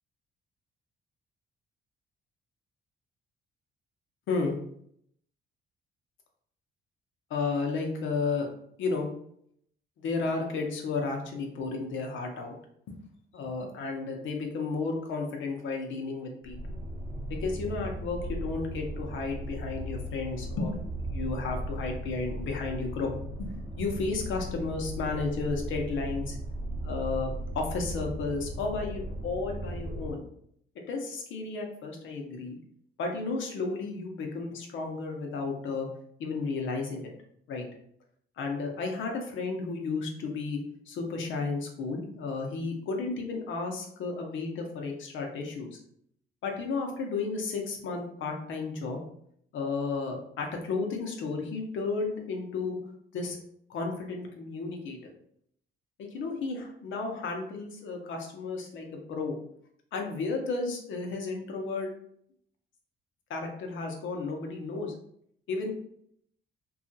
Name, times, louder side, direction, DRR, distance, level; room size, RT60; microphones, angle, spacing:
voice 1, 4.3-4.6 7.3-8.5 8.8-9.1 10.0-12.6 13.3-16.7 17.3-20.8 21.1-23.1 23.4-26.4 26.8-30.2 30.9-32.6 33.0-35.9 36.2-37.1 37.5-37.7 38.4-40.6 40.9-45.8 46.4-49.0 49.5-52.8 53.1-53.4 53.7-55.1 56.0-59.4 59.9-61.9 63.3-64.9 65.5-65.7, left 4 dB, 75° left, 2 dB, 0.7 m, -33 dB
sound 1, 16.4-30.1, equal, 25° right, 1.0 m, -37 dB
2.7 x 2.3 x 2.6 m, 0.68 s
cardioid pair, 90°, 20 cm